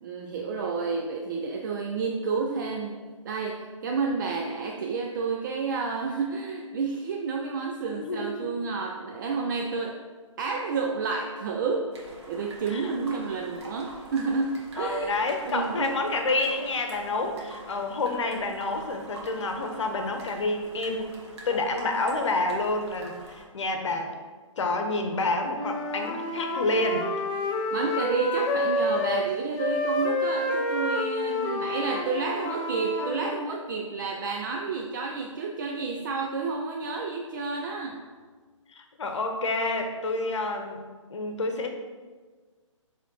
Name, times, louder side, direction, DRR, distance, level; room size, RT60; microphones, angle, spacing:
voice 1, 0.0-10.0 10.4-15.2 15.5-16.0 27.7-38.2, right 4 dB, 35° right, 2 dB, 0.5 m, -30 dB
voice 2, 8.0-8.6 12.7-13.2 14.8-21.1 21.5-24.1 24.6-27.1 38.7-40.8 41.1-41.7, left 2 dB, 60° left, 4 dB, 1.0 m, -29 dB
sound 1, 11.9-23.5, right 2 dB, 55° right, 1.5 m, -46 dB
Wind instrument woodwind instrument, 25.5-29.3 29.6-33.4, left 2 dB, 15° left, 0.4 m, -29 dB
7.5 x 3.4 x 3.8 m, 1.4 s
hypercardioid pair, 140°, 17 cm